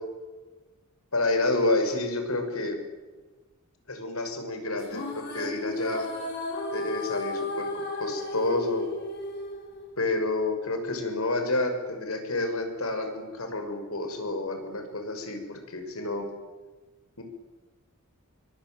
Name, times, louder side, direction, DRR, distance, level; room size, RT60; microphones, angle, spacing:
voice 1, 1.1-2.8 3.9-6.1 6.7-7.7 8.0-8.8 10.0-16.3 17.2-17.3, left 2 dB, 80° left, 6 dB, 6.0 m, -29 dB
sound 1, 4.8-10.3, left 1 dB, 50° left, 8.0 m, -34 dB
25.0 x 24.0 x 9.2 m, 1.3 s
head